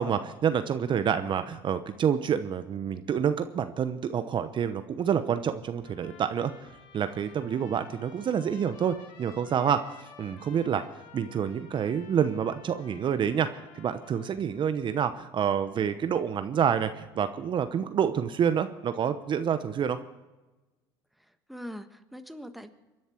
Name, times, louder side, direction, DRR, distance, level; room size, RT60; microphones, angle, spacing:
voice 1, 0.0-6.5 6.9-10.8 11.1-13.5 13.7-20.0, right 8 dB, 40° right, 10 dB, 0.9 m, -28 dB
Trumpet, 5.8-14.6, left 6 dB, 70° left, 2.6 m, -53 dB
voice 2, 21.2-22.7, equal, ahead, 8 dB, 1.4 m, -42 dB
24.5 x 11.0 x 4.6 m, 1.1 s
hypercardioid pair, 75°, 12 cm